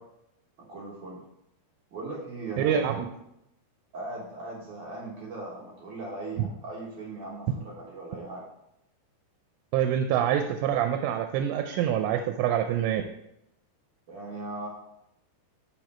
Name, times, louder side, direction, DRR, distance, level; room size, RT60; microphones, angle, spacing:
voice 1, 0.7-1.2 1.9-3.0 3.9-8.4 14.1-14.7, right 2 dB, 60° right, -4 dB, 2.3 m, -39 dB
voice 2, 2.6-3.1 9.7-13.0, right 9 dB, 85° right, 6 dB, 2.8 m, -26 dB
6.8 x 6.2 x 4.2 m, 0.81 s
omnidirectional pair, 5.0 m